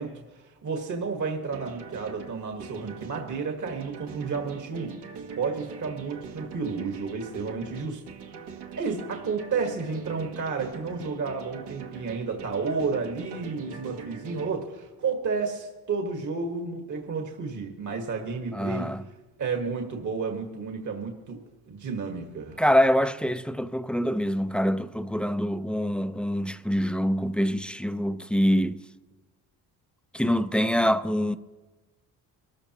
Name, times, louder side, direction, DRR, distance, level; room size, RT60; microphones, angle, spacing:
voice 1, 0.0-5.0 5.4-8.0 8.7-18.9 19.4-22.6, right 4 dB, 50° right, 1.7 m, -31 dB
sound 1, 1.5-14.5, right 6 dB, 80° right, 1.6 m, -42 dB
voice 2, 18.5-19.0 22.6-28.8 30.1-31.4, equal, 5° left, 0.5 m, -25 dB
22.5 x 13.5 x 3.0 m
cardioid pair, 80°, 39 cm